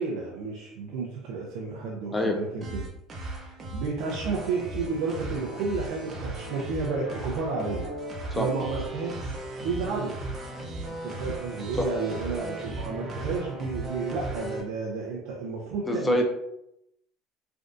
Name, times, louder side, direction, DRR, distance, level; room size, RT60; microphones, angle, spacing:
voice 1, 0.0-2.9 3.3-10.1 10.9-16.2, right 4 dB, 75° right, -3 dB, 0.5 m, -32 dB
sound 1, 2.6-14.6, right 2 dB, 30° right, 0.6 m, -36 dB
voice 2, 15.9-16.2, left 1 dB, 10° left, 3 dB, 0.3 m, -25 dB
3.3 x 2.5 x 2.5 m, 0.82 s
cardioid pair, 145°, 0 cm